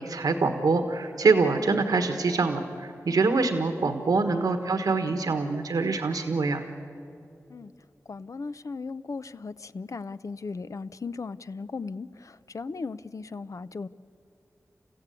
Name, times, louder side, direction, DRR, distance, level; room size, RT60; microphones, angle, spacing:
voice 1, 0.0-6.6, right 4 dB, 90° right, 7 dB, 1.4 m, -25 dB
voice 2, 8.1-13.9, left 4 dB, 60° left, 14 dB, 0.6 m, -37 dB
29.5 x 15.0 x 8.3 m, 2.6 s
cardioid pair, 40°, 6 cm